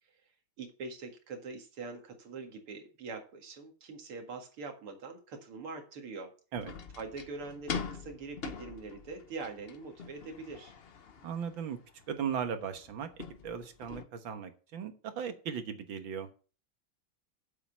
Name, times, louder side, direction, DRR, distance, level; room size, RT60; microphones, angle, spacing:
voice 1, 0.6-6.3 7.0-10.7, right 4 dB, 85° right, 4 dB, 2.7 m, -43 dB
sound 1, 6.5-14.0, left 5 dB, 85° left, 0.5 m, -44 dB
voice 2, 11.2-11.8 12.1-13.1 13.4-16.3, right 7 dB, 65° right, 8 dB, 2.0 m, -37 dB
7.8 x 7.4 x 5.9 m, 0.37 s
omnidirectional pair, 2.3 m